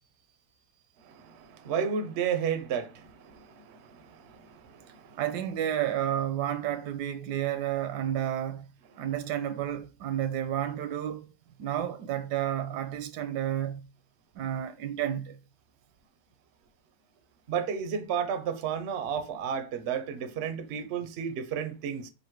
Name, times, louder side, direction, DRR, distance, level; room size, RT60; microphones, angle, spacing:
voice 1, 1.0-5.2 17.5-22.1, right 7 dB, 60° right, 0.7 m, -33 dB
voice 2, 5.2-8.7 9.0-11.3 11.6-13.9 14.3-15.4, right 11 dB, 80° right, 1.2 m, -31 dB
3.9 x 2.7 x 4.5 m
omnidirectional pair, 1.8 m